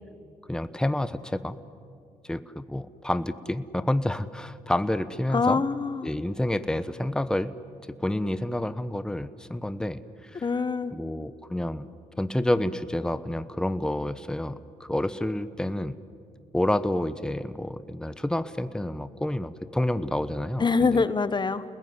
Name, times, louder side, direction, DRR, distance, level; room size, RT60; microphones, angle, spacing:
voice 1, 0.5-1.6 2.2-5.6 6.0-7.5 7.9-10.5 10.9-11.9 12.2-16.0 16.5-21.0, left 1 dB, 5° left, 13 dB, 1.0 m, -29 dB
voice 2, 5.3-6.1 10.4-10.9 20.6-21.6, left 4 dB, 30° left, 14 dB, 1.0 m, -24 dB
30.0 x 20.5 x 9.6 m, 2.4 s
cardioid pair, 70°, 14 cm